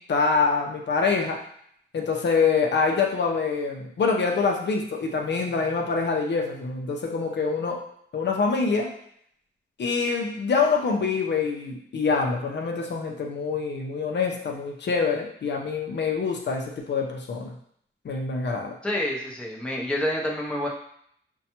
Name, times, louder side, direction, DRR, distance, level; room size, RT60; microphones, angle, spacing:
voice 1, 0.1-1.4 1.9-7.8 8.1-8.9 9.8-17.6 18.0-18.8, left 4 dB, 60° left, 1 dB, 0.6 m, -25 dB
voice 2, 18.8-20.7, left 1 dB, 5° left, -2 dB, 0.6 m, -28 dB
5.3 x 2.2 x 2.9 m, 0.68 s
wide cardioid pair, 140°, 20 cm